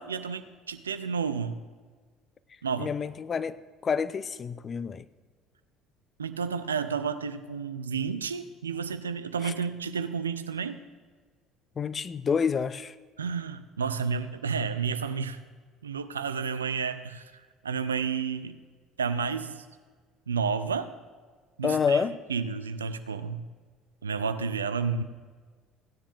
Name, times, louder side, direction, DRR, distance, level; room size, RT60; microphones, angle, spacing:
voice 1, 0.0-1.6 2.6-2.9 6.2-10.8 13.2-15.4 15.8-17.3 17.6-18.6 19.0-19.7 20.3-20.9 21.6-23.5 24.0-25.0, right 5 dB, 80° right, 0.4 m, -31 dB
voice 2, 2.8-3.6 3.8-5.1 9.4-9.5 11.8-12.9 21.6-22.2, left 6 dB, 35° left, 0.4 m, -28 dB
16.5 x 9.9 x 2.6 m
figure-of-eight pair, 60°, 0 cm